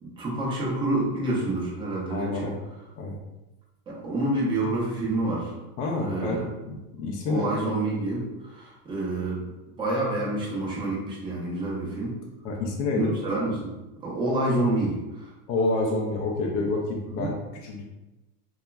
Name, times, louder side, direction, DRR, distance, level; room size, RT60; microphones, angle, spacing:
voice 1, 0.0-2.5 3.9-5.5 6.0-6.5 7.3-9.5 9.8-12.2 12.9-13.7 14.0-15.3 17.1-17.3, right 2 dB, 10° right, -6 dB, 0.4 m, -28 dB
voice 2, 2.1-2.6 3.0-3.2 5.8-6.4 6.7-7.5 12.4-13.1 15.5-17.9, left 2 dB, 50° left, -1 dB, 0.5 m, -28 dB
2.9 x 2.3 x 2.2 m, 1.0 s
supercardioid pair, 145°, 46 cm